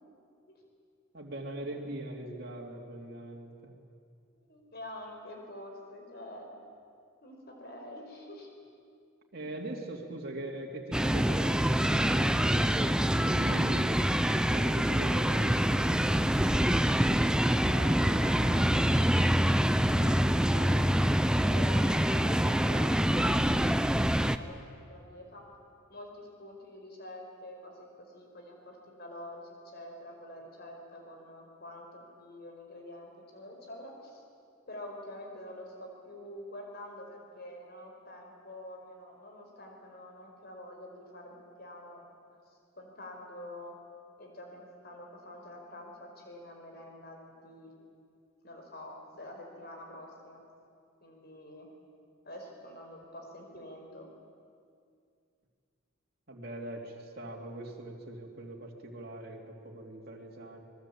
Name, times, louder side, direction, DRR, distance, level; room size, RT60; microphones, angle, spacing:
voice 1, 1.1-3.7 9.3-14.0 14.3-16.2 56.3-60.6, right 1 dB, 50° right, -2 dB, 3.0 m, -42 dB
voice 2, 4.4-6.5 7.2-8.5 17.7-19.1 20.5-20.9 21.4-22.9 23.2-23.5 24.0-24.6 24.9-25.4 25.9-34.2 34.7-42.0 42.8-43.7 44.2-47.7 48.4-50.4 51.0-51.7 52.2-54.1, left 1 dB, 50° left, 2 dB, 4.9 m, -46 dB
sound 1, 10.9-24.4, equal, 5° right, 0.6 m, -25 dB
26.0 x 20.5 x 8.7 m, 2.3 s
head